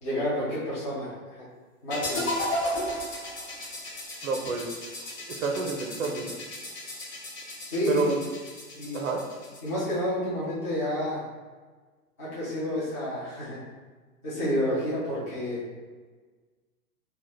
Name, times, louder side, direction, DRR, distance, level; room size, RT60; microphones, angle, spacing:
voice 1, 0.0-1.1 1.4-1.5 1.8-2.3 7.7-8.2 8.7-9.0 9.6-11.2 12.2-13.6 14.2-15.6, left 1 dB, 15° left, -11 dB, 0.3 m, -29 dB
sound 1, 1.9-9.9, left 1 dB, 30° left, 0.9 m, -35 dB
voice 2, 4.2-4.8 5.3-6.3 7.9-8.2 8.9-9.2 14.7-14.8, right 4 dB, 65° right, 2 dB, 0.5 m, -29 dB
2.1 x 2.1 x 3.3 m, 1.4 s
figure-of-eight pair, 105°, 44 cm